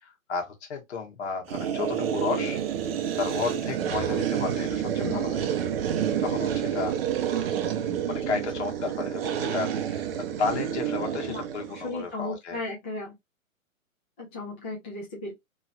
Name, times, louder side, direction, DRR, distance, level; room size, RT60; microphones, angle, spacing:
voice 1, 0.0-2.6 3.2-5.5 6.2-6.9 8.0-12.6, left 5 dB, 50° left, 1.4 m, -33 dB
sound 1, 1.5-11.9, right 9 dB, 45° right, 0.6 m, -29 dB
voice 2, 5.0-5.3 8.3-9.0 11.3-13.1 14.2-15.3, left 2 dB, 10° left, 0.3 m, -36 dB
3.0 x 2.9 x 2.2 m
figure-of-eight pair, 125°, 42 cm